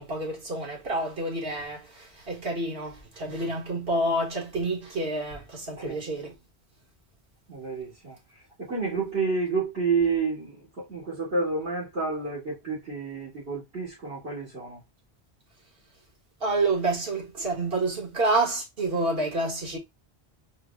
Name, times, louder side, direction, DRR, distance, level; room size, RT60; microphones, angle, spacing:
voice 1, 0.0-6.3 16.4-19.8, right 2 dB, 65° right, 1.6 m, -28 dB
voice 2, 7.5-8.2 8.6-14.8, right 4 dB, 80° right, 2.5 m, -29 dB
4.4 x 2.1 x 3.5 m
omnidirectional pair, 1.1 m